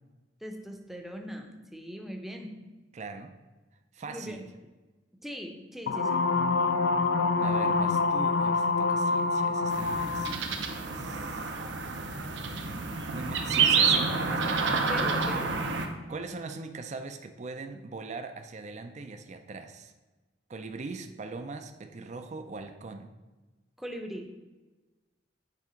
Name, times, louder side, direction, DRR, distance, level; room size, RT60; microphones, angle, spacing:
voice 1, 0.4-2.5 4.1-4.4 5.2-6.2 14.9-15.5 23.8-24.3, equal, ahead, 3 dB, 0.7 m, -40 dB
voice 2, 2.9-3.3 3.9-4.4 7.4-11.6 13.1-14.6 16.1-19.9 20.5-23.1, right 3 dB, 40° right, 7 dB, 0.5 m, -41 dB
sound 1, 5.9-10.4, left 4 dB, 75° left, 0.5 m, -26 dB
sound 2, 9.7-15.9, right 5 dB, 70° right, 0.8 m, -28 dB
8.4 x 3.6 x 5.1 m, 1.2 s
head